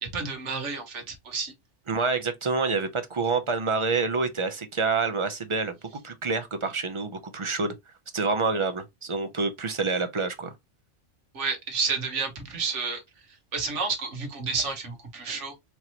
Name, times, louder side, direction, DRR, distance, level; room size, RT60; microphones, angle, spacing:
voice 1, 0.0-1.5 11.3-13.0 13.3-15.5, right 4 dB, 70° right, 1.4 m, -30 dB
voice 2, 1.9-5.7 6.0-7.7 8.1-10.5, right 4 dB, 40° right, 0.4 m, -27 dB
4.5 x 2.9 x 2.8 m
omnidirectional pair, 1.3 m